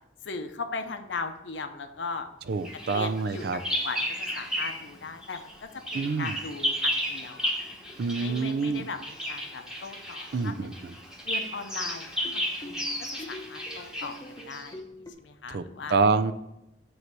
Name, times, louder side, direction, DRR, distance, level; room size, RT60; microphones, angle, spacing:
voice 1, 0.2-2.3 2.9-5.5 5.9-7.5 8.2-10.9 11.2-12.9 13.3-14.2 14.5-14.8 15.2-16.0, left 4 dB, 85° left, 7 dB, 0.7 m, -38 dB
voice 2, 2.5-3.6 5.9-6.4 8.0-8.9 10.3-10.9 15.5-15.6 15.9-16.3, right 4 dB, 65° right, 13 dB, 0.5 m, -27 dB
Bird vocalization bird call bird song, 2.6-4.9 5.2-14.7, equal, 5° right, 1.1 m, -33 dB
sound 1, 11.8-15.1, left 1 dB, 20° left, 0.8 m, -45 dB
7.8 x 3.2 x 6.0 m, 0.87 s
head